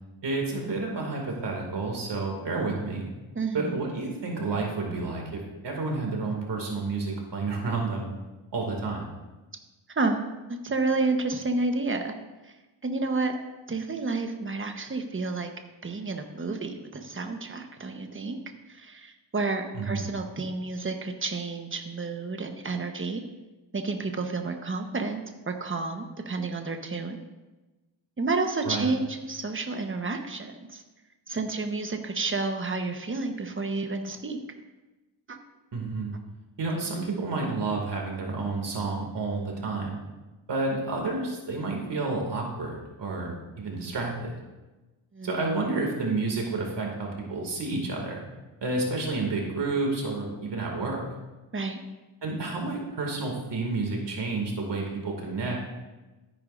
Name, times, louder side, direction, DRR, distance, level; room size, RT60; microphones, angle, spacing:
voice 1, 0.2-3.1 3.5-8.1 8.5-9.1 19.7-20.0 28.6-28.8 35.7-36.1 36.6-40.0 40.5-44.3 45.2-48.2 48.6-51.0 52.2-55.7, right 3 dB, 60° right, 0 dB, 2.6 m, -30 dB
voice 2, 3.3-3.8 9.9-10.2 10.5-12.1 12.4-12.5 12.8-13.4 13.7-15.5 15.8-18.4 18.7-23.2 23.7-25.2 25.5-27.2 28.2-30.8 31.3-34.4 35.3-35.4 45.1-45.3 51.5-51.8, right 3 dB, 25° right, 5 dB, 1.2 m, -30 dB
13.5 x 10.5 x 2.7 m, 1.1 s
cardioid pair, 90°, 47 cm